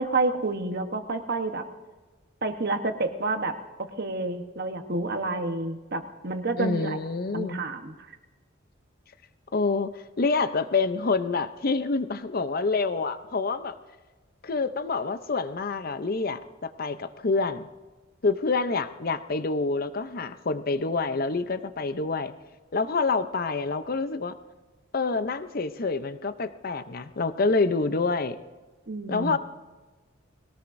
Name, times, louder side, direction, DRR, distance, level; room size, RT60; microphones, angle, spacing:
voice 1, 0.0-1.6 2.4-7.0 7.3-8.2 28.9-29.4, right 2 dB, 55° right, 7 dB, 1.1 m, -29 dB
voice 2, 6.6-7.6 9.5-13.7 14.4-17.7 18.2-22.3 22.7-24.3 24.9-28.4 29.1-29.4, left 3 dB, 50° left, 12 dB, 0.6 m, -27 dB
21.0 x 18.0 x 2.6 m, 1.3 s
head